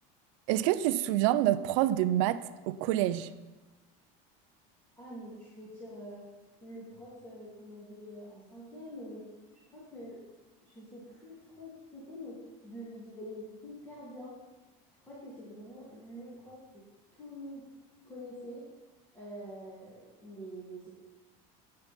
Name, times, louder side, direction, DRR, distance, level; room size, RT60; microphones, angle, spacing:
voice 1, 0.5-3.3, right 13 dB, 65° right, 0.6 m, -27 dB
voice 2, 5.0-6.3 6.6-9.3 9.5-10.2 10.6-14.4 15.0-16.9 17.1-17.7 18.0-18.7 19.1-20.9, equal, 15° left, 2.8 m, -46 dB
20.0 x 7.4 x 4.4 m
cardioid pair, 180°, 18 cm